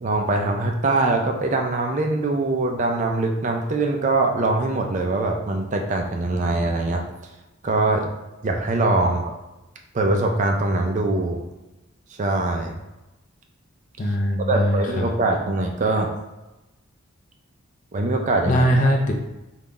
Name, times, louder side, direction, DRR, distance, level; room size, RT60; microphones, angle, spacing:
voice 1, 0.0-7.0 7.6-8.1 8.4-9.3 9.9-11.4 12.2-12.7 14.5-16.1 17.9-18.6, right 2 dB, 35° right, 3 dB, 0.4 m, -22 dB
voice 2, 14.0-15.1 18.5-19.1, equal, 35° left, 1 dB, 0.4 m, -21 dB
3.9 x 2.3 x 3.7 m, 1.0 s
head